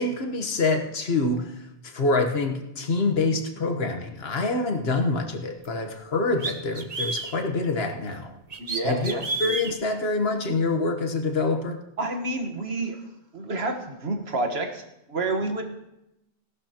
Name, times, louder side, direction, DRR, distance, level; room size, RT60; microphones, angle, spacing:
voice 1, 0.0-1.5 1.8-8.3 8.8-11.8, left 3 dB, 75° left, 4 dB, 1.4 m, -26 dB
sound 1, 5.6-5.7 6.4-7.4 8.5-9.7, right 3 dB, 40° right, 1.0 m, -30 dB
voice 2, 8.6-9.2 12.0-13.0 13.3-15.6, right 2 dB, 80° right, 4 dB, 1.7 m, -29 dB
17.5 x 12.0 x 2.9 m, 0.87 s
omnidirectional pair, 1.0 m